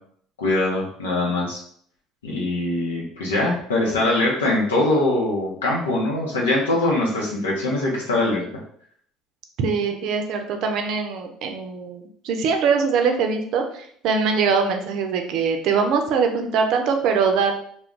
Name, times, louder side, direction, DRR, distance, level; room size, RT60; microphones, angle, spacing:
voice 1, 0.4-1.6 2.2-8.4, left 2 dB, 85° left, -4 dB, 0.6 m, -22 dB
voice 2, 9.6-17.5, right 5 dB, 60° right, 5 dB, 0.4 m, -22 dB
2.3 x 2.1 x 3.7 m, 0.62 s
hypercardioid pair, 60°, 0 cm